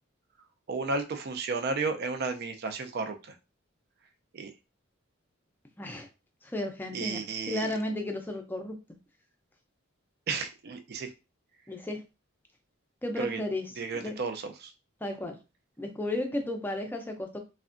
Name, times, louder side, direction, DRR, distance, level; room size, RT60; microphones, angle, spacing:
voice 1, 0.7-3.2 4.3-4.5 6.9-7.7 10.3-11.1 13.2-13.4 13.8-14.7, right 4 dB, 50° right, 0.4 m, -33 dB
voice 2, 5.8-6.1 6.4-8.8 11.7-12.0 13.0-14.1 15.0-15.3 15.8-17.4, left 1 dB, 10° left, 0.4 m, -34 dB
3.4 x 2.1 x 2.5 m
head